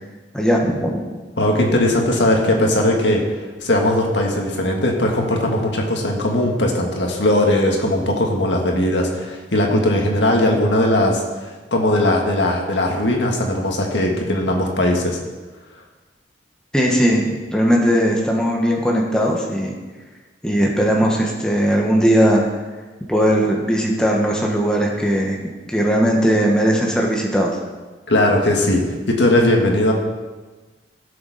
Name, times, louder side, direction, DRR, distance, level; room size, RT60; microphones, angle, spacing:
voice 1, 0.3-1.0 16.7-19.7 20.4-22.4 23.1-25.4 25.7-27.6, equal, 5° left, -2 dB, 1.3 m, -18 dB
voice 2, 1.4-3.2 3.6-15.2 28.1-29.9, left 1 dB, 70° left, 1 dB, 1.8 m, -19 dB
17.0 x 6.9 x 4.2 m, 1.3 s
head